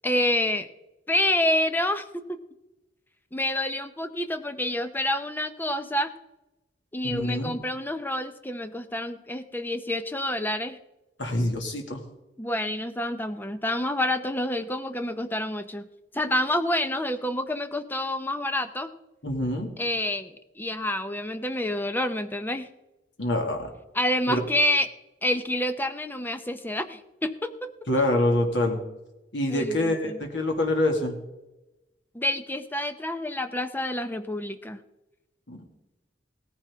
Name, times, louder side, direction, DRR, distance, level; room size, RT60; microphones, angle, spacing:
voice 1, 0.0-0.7 1.1-2.0 3.3-6.1 6.9-10.8 12.4-15.8 16.1-18.9 19.8-22.7 23.9-24.9 25.2-27.7 29.5-30.2 32.1-34.8, left 1 dB, 10° left, 9 dB, 0.7 m, -28 dB
voice 2, 7.0-7.6 11.2-12.0 19.2-19.8 23.2-23.7 24.3-24.4 27.9-28.8 29.3-31.2 35.5-35.6, left 1 dB, 75° left, 2 dB, 2.2 m, -25 dB
17.5 x 10.0 x 3.6 m, 0.98 s
head